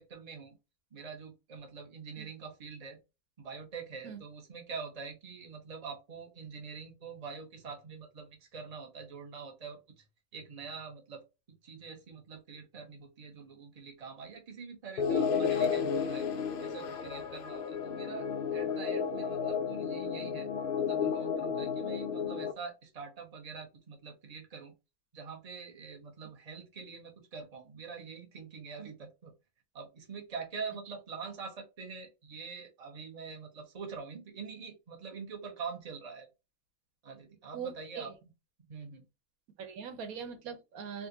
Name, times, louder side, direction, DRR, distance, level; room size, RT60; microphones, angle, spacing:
voice 1, 0.1-0.5 0.9-3.0 3.4-10.0 10.3-11.2 11.6-16.3 16.6-20.5 20.8-24.7 25.1-29.3 29.7-36.3 37.0-38.1 38.7-39.0, right 5 dB, 30° right, 0.9 m, -45 dB
sound 1, 15.0-22.5, left 6 dB, 85° left, 0.4 m, -32 dB
voice 2, 37.5-38.2 39.6-41.1, right 7 dB, 90° right, 1.2 m, -41 dB
3.5 x 2.5 x 2.8 m
omnidirectional pair, 1.5 m